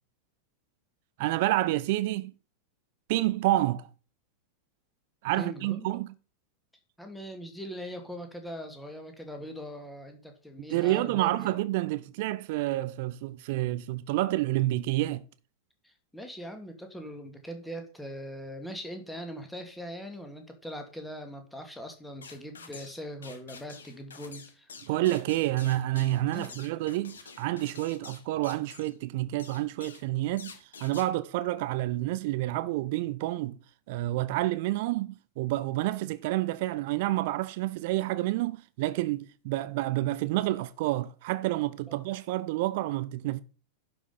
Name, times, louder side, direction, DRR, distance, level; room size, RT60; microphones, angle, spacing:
voice 1, 1.2-2.3 3.1-3.9 5.2-6.1 10.7-15.2 24.8-33.6 33.9-43.4, right 16 dB, 50° right, 0.6 m, -29 dB
voice 2, 5.3-5.9 7.0-11.5 15.8-24.7 26.3-26.6 41.9-42.0, equal, 5° left, 2.2 m, -41 dB
sound 1, 22.2-23.0 23.2-28.9 29.4-30.1 30.4-31.1, left 5 dB, 70° left, 1.6 m, -48 dB
11.5 x 5.4 x 5.4 m
figure-of-eight pair, 90°, 0 cm